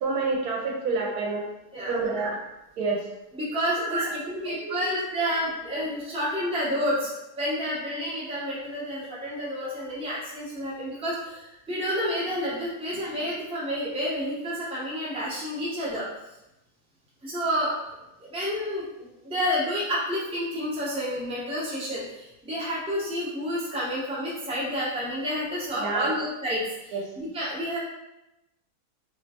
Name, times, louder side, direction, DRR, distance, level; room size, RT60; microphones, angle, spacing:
voice 1, 0.0-1.5 1.9-2.4 2.8-3.0 3.8-4.9 5.7-5.8 25.8-26.2 26.9-27.1, right 3 dB, 80° right, 0 dB, 1.1 m, -28 dB
voice 2, 3.3-16.1 17.2-27.8, equal, 5° right, -8 dB, 0.7 m, -30 dB
3.1 x 2.9 x 2.8 m, 0.93 s
omnidirectional pair, 1.6 m